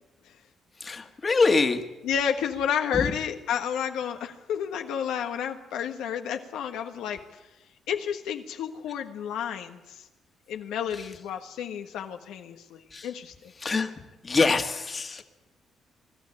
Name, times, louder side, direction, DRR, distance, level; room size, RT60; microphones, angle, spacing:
voice 1, 0.8-1.8 2.9-3.1 10.9-11.1 12.9-13.1 13.6-13.9 14.2-15.2, left 4 dB, 35° left, 6 dB, 1.8 m, -25 dB
voice 2, 2.0-7.2 7.9-10.1 10.5-13.3, left 8 dB, 90° left, 4 dB, 1.4 m, -31 dB
22.5 x 12.5 x 9.9 m, 1.1 s
cardioid pair, 90°, 0 cm